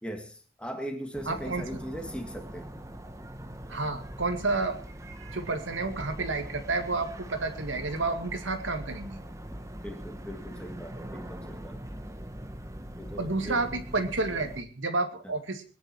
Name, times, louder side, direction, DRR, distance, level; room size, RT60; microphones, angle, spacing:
voice 1, 0.0-2.7 9.8-11.8 13.0-13.7 15.2-15.4, equal, 5° left, 5 dB, 2.0 m, -39 dB
sound 1, 1.1-14.6, equal, 15° right, 1.1 m, -42 dB
voice 2, 1.3-1.6 3.7-4.8 5.0-9.2 13.2-15.6, right 3 dB, 70° right, 6 dB, 2.2 m, -30 dB
22.0 x 10.5 x 4.7 m, 0.40 s
head